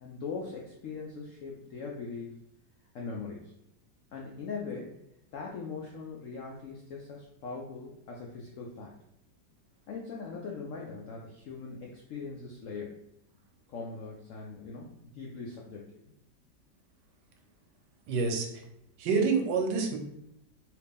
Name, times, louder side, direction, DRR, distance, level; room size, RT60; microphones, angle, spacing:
voice 1, 0.0-2.4 2.9-3.5 4.1-5.0 5.3-9.0 9.9-13.0 13.7-16.1, left 4 dB, 80° left, -2 dB, 0.7 m, -41 dB
voice 2, 18.1-18.5 19.0-20.0, right 4 dB, 80° right, 3 dB, 1.2 m, -27 dB
3.0 x 2.8 x 3.4 m, 0.80 s
omnidirectional pair, 1.9 m